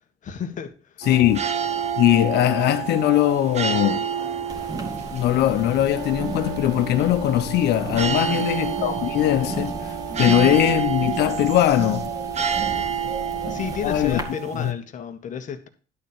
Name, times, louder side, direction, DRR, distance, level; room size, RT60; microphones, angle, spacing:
voice 1, 0.2-1.1 8.1-8.4 12.7-12.8 13.3-15.7, left 7 dB, 50° left, 1.8 m, -33 dB
sound 1, 1.0-14.7, right 7 dB, 40° right, 1.3 m, -29 dB
voice 2, 1.1-1.4 2.0-4.0 5.1-9.7 10.2-12.1 13.0-13.1 13.4-13.5 13.8-14.2 14.6-14.7, left 13 dB, 80° left, 1.1 m, -20 dB
sound 2, 4.5-14.2, right 2 dB, 20° right, 2.2 m, -35 dB
Wind instrument woodwind instrument, 5.9-10.6, right 8 dB, 65° right, 1.1 m, -37 dB
11.5 x 4.4 x 6.9 m
cardioid pair, 110°, 17 cm